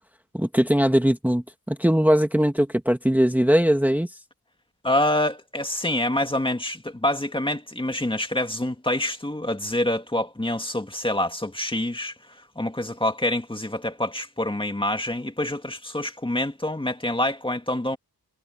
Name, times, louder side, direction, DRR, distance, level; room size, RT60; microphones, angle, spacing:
voice 1, 0.3-4.1, equal, 5° right, 1.8 m, -20 dB
voice 2, 4.8-12.1 12.6-18.0, left 1 dB, 15° left, 2.0 m, -26 dB
wide cardioid pair, 130°, 38 cm